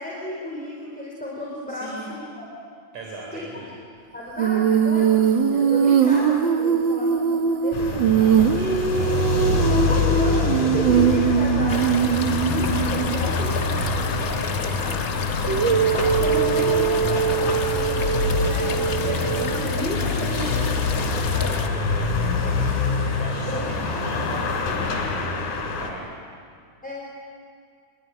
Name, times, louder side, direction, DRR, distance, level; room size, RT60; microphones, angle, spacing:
voice 1, 0.0-2.5 3.3-3.6 4.1-8.5 9.5-15.0 15.5-20.5 21.0-21.6 23.5-23.7 24.1-24.5 26.8-27.1, left 1 dB, 5° left, -4 dB, 4.3 m, -33 dB
voice 2, 1.7-2.1 2.9-3.8 6.0-6.2 8.0-10.1 20.1-20.7 21.1-22.7 23.0-25.4 25.8-26.0, right 2 dB, 70° right, -1 dB, 5.2 m, -38 dB
Female singing, 4.4-13.3 15.5-19.7, right 8 dB, 55° right, 1.4 m, -21 dB
sound 1, 7.7-25.9, left 4 dB, 80° left, 4.5 m, -25 dB
sound 2, 11.7-21.7, left 5 dB, 55° left, 0.9 m, -33 dB
27.5 x 22.5 x 9.8 m, 2.2 s
omnidirectional pair, 3.5 m